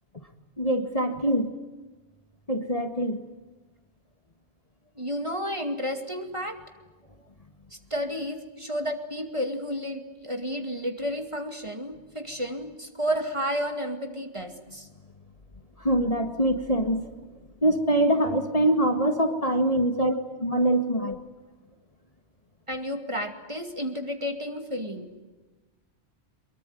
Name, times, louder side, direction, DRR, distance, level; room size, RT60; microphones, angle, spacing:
voice 1, 0.6-1.5 2.5-3.2 15.8-17.0 17.6-20.1 20.4-21.2, right 1 dB, 35° left, 7 dB, 1.9 m, -24 dB
voice 2, 5.0-6.6 7.7-14.9 19.9-20.2 21.0-21.2 22.7-25.2, equal, 25° right, 6 dB, 2.5 m, -32 dB
23.5 x 23.0 x 9.3 m, 1.2 s
omnidirectional pair, 1.1 m